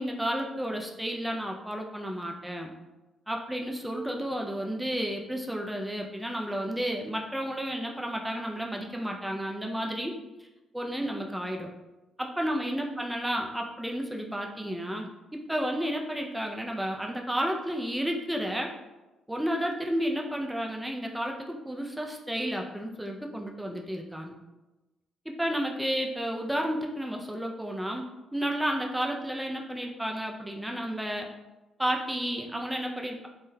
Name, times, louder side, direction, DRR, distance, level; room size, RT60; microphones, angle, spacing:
voice 1, 0.0-2.7 3.3-10.1 10.4-10.5 10.7-11.7 12.2-18.7 19.3-24.4 25.3-31.3 31.8-33.3, equal, 5° right, 1 dB, 0.3 m, -32 dB
3.5 x 2.2 x 2.7 m, 1.0 s
cardioid pair, 90°, 0 cm